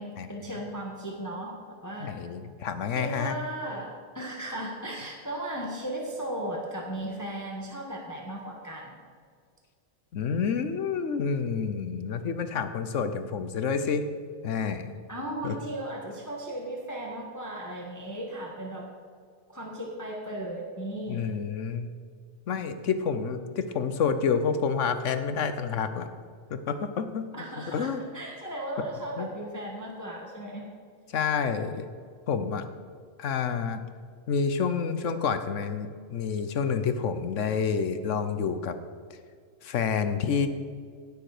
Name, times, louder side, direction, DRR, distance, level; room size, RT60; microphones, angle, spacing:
voice 1, 0.0-1.6 1.8-2.1 2.9-9.0 15.1-18.9 19.5-21.2 27.3-30.7, right 1 dB, 15° left, -1 dB, 1.2 m, -36 dB
voice 2, 2.0-3.3 10.1-14.0 14.4-14.9 15.4-15.6 21.1-21.9 22.5-26.1 26.5-27.3 27.6-28.0 29.2-29.3 31.1-31.9 32.3-32.6 33.2-33.8 34.3-38.7 39.6-40.5, left 6 dB, 70° left, 10 dB, 1.1 m, -28 dB
16.5 x 6.9 x 5.0 m, 2.1 s
omnidirectional pair, 1.4 m